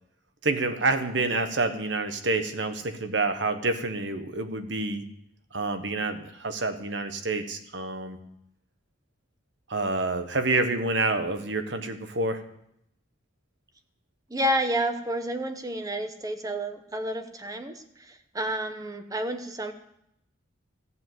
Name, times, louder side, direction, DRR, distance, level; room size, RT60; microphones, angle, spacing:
voice 1, 0.4-5.0 5.5-8.2 9.7-12.4, right 3 dB, 65° right, 8 dB, 1.3 m, -28 dB
voice 2, 14.3-19.7, right 1 dB, 20° right, 7 dB, 1.1 m, -30 dB
14.0 x 7.7 x 7.9 m, 0.77 s
head